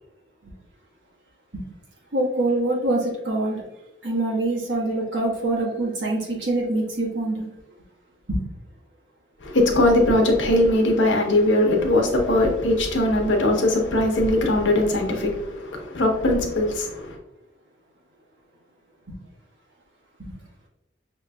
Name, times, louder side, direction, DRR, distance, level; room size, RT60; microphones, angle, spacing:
voice 1, 2.1-3.6 4.0-7.5 8.3-8.4 20.2-20.3, right 2 dB, 70° right, 1.5 m, -25 dB
voice 2, 9.4-17.2, left 1 dB, 80° left, 1.0 m, -20 dB
5.9 x 3.1 x 2.3 m
head